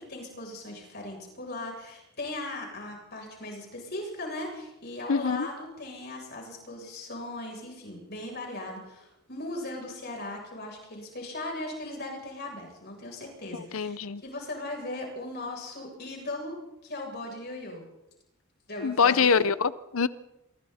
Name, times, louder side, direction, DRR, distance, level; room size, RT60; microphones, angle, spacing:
voice 1, 0.0-16.6 16.8-17.9 18.7-19.4, left 2 dB, 50° left, 0 dB, 7.8 m, -38 dB
voice 2, 5.1-5.5 13.7-14.2 18.8-20.1, left 6 dB, 75° left, 16 dB, 0.7 m, -24 dB
26.0 x 23.5 x 4.3 m, 0.86 s
head